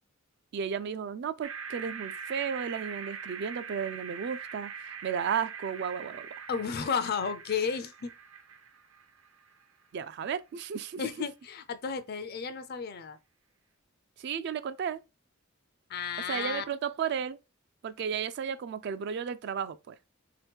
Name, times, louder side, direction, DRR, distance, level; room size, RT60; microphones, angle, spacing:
voice 1, 0.5-6.5 9.9-11.0 14.2-15.0 16.3-17.4 17.8-20.0, right 7 dB, 55° right, 0.3 m, -34 dB
Digital Ghost Cry, 1.4-9.6, right 6 dB, 75° right, 0.7 m, -42 dB
voice 2, 6.5-8.1 11.0-13.2 15.9-16.6, left 6 dB, 50° left, 0.4 m, -33 dB
3.5 x 2.9 x 3.3 m
head